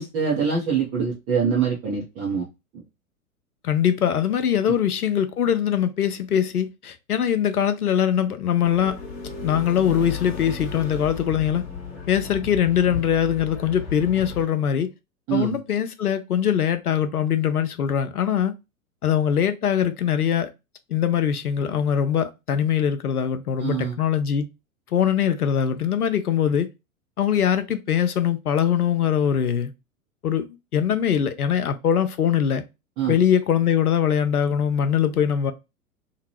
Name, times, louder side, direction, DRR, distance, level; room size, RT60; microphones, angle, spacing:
voice 1, 0.0-2.5 2.7-2.8 15.3-15.6 23.6-24.0 33.0-33.2, right 6 dB, 20° right, 0.5 m, -24 dB
voice 2, 3.6-9.0 9.4-11.6 12.1-14.9 15.3-18.5 19.0-20.5 20.9-24.5 24.9-26.7 27.2-29.7 30.2-32.6 33.1-35.5, left 9 dB, 85° left, 0.6 m, -22 dB
sound 1, 8.6-14.4, left 5 dB, 30° left, 1.1 m, -35 dB
2.8 x 2.2 x 3.0 m
figure-of-eight pair, 105°, 44 cm